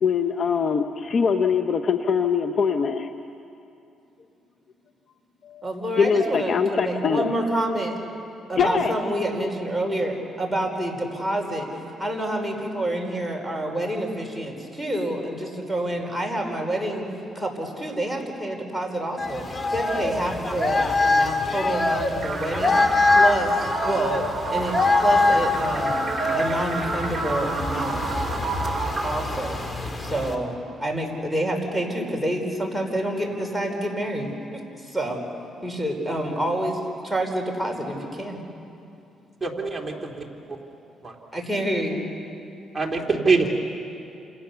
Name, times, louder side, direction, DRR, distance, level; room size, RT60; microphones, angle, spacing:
voice 1, 0.0-3.1 5.4-5.7 6.0-7.3 8.6-8.9, left 6 dB, 50° left, 7 dB, 1.1 m, -22 dB
voice 2, 5.6-8.0 8.5-17.1 17.3-22.8 23.1-24.2 24.5-28.3 29.0-29.6 30.0-35.2 35.6-38.4 41.3-42.0, right 1 dB, ahead, 0 dB, 5.0 m, -28 dB
sound 1, 19.2-30.3, left 3 dB, 30° left, 2.7 m, -24 dB
sound 2, 22.2-30.2, right 3 dB, 35° right, 3.4 m, -30 dB
voice 3, 39.4-40.1 41.0-41.1 42.7-43.6, right 4 dB, 20° right, 0 dB, 3.4 m, -23 dB
29.0 x 28.5 x 7.0 m, 2.7 s
cardioid pair, 90°, 0 cm